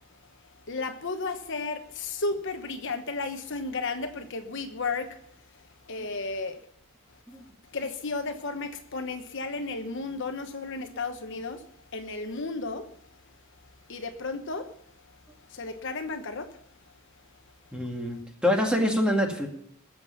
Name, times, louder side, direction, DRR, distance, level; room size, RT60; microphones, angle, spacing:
voice 1, 0.7-5.1 5.9-6.6 7.7-11.6 11.9-12.8 13.9-14.7 15.5-16.5, left 3 dB, 55° left, 1.1 m, -33 dB
voice 2, 17.7-19.5, equal, 5° right, 2.1 m, -25 dB
20.5 x 7.6 x 5.8 m
head